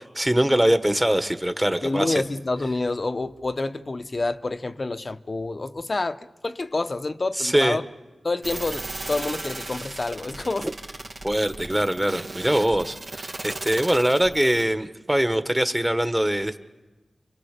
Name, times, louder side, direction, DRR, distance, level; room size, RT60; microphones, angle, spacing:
voice 1, 0.1-2.2 7.3-7.8 11.2-16.6, right 1 dB, 15° right, 1.6 m, -22 dB
voice 2, 1.8-7.8 8.2-10.7, left 2 dB, 50° left, 0.9 m, -28 dB
sound 1, 8.4-14.6, right 2 dB, 65° right, 2.5 m, -36 dB
28.5 x 24.5 x 6.8 m
cardioid pair, 45°, 0 cm